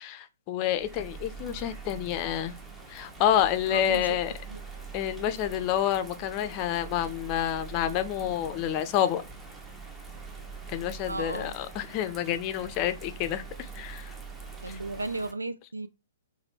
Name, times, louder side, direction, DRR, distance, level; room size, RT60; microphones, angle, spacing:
voice 1, 0.0-2.5 2.9-4.3 4.9-9.2 10.7-14.1 14.7-14.8, left 10 dB, 35° left, 0.5 m, -28 dB
Bird vocalization bird call bird song / Rain, 0.7-15.3, right 4 dB, 10° right, 0.7 m, -44 dB
voice 2, 3.7-4.2 4.5-4.6 11.1-11.6 14.6-15.9, right 2 dB, 85° right, 0.3 m, -34 dB
3.3 x 2.2 x 4.2 m
figure-of-eight pair, 115°, 0 cm